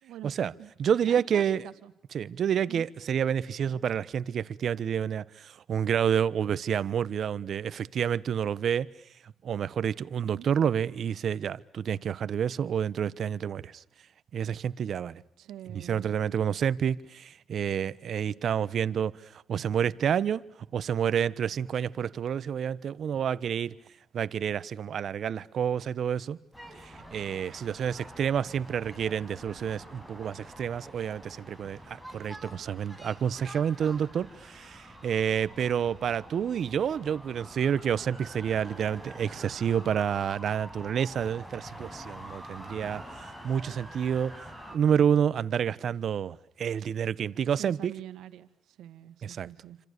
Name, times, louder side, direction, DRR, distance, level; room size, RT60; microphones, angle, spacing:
voice 1, 0.0-0.7 1.1-1.9 2.7-2.9 10.2-10.5 15.4-16.1 47.5-49.8, right 12 dB, 85° right, 2.2 m, -45 dB
voice 2, 0.8-1.6 2.1-8.9 9.2-13.8 14.3-15.2 15.7-23.7 24.1-26.4 26.8-43.0 43.4-44.3 44.7-47.9 49.2-49.5, right 8 dB, 60° right, 1.1 m, -29 dB
sound 1, 26.5-44.8, right 1 dB, 5° left, 6.9 m, -46 dB
29.0 x 26.5 x 6.8 m
cardioid pair, 90°, 0 cm